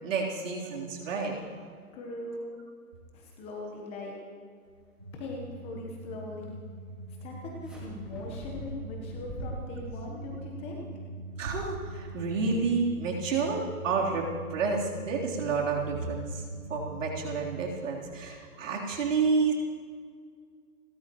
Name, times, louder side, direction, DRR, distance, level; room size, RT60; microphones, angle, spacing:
voice 1, 0.0-1.3 11.4-19.5, right 4 dB, 55° right, -2 dB, 3.7 m, -30 dB
voice 2, 1.9-2.5 3.1-4.1 5.1-6.6 7.2-10.9, left 2 dB, 15° left, 0 dB, 1.1 m, -40 dB
sound 1, 5.0-17.7, right 2 dB, 30° right, 0.3 m, -42 dB
sound 2, 7.6-10.0, equal, ahead, 2.4 m, -43 dB
30.0 x 13.0 x 3.1 m, 2.2 s
hypercardioid pair, 150°, 45 cm